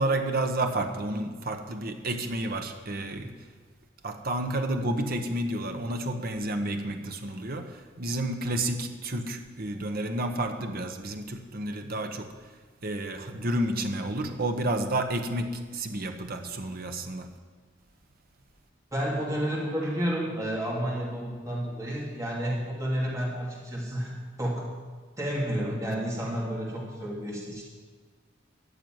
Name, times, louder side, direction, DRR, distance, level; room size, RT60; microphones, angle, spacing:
voice 1, 0.0-3.4 4.0-12.3 12.8-17.3, right 1 dB, 50° right, 5 dB, 1.2 m, -30 dB
voice 2, 18.9-24.1 24.4-24.6 25.2-27.6, equal, 20° right, -5 dB, 3.0 m, -30 dB
14.0 x 6.9 x 9.4 m, 1.5 s
head